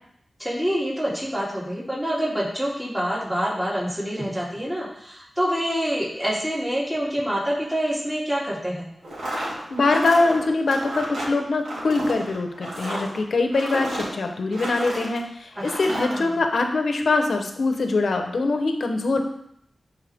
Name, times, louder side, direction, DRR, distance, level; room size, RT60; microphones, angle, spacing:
voice 1, 0.4-8.9 15.6-16.2, equal, 10° right, -7 dB, 3.4 m, -26 dB
sound 1, 9.0-15.2 15.6-16.2, right 1 dB, 90° right, 2.6 m, -32 dB
voice 2, 9.7-19.2, left 3 dB, 80° left, 5 dB, 1.0 m, -23 dB
12.0 x 4.6 x 3.7 m, 0.73 s
cardioid pair, 50°, 0 cm